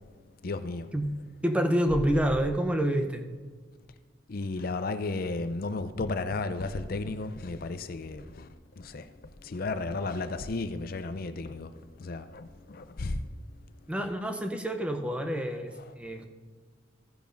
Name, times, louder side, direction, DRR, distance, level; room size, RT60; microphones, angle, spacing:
voice 1, 0.4-0.9 4.3-8.5 8.8-13.2 15.8-15.9, left 3 dB, 50° left, 0.5 m, -34 dB
voice 2, 1.4-3.2 13.9-16.3, equal, 5° right, 0.7 m, -28 dB
14.5 x 10.5 x 2.6 m
head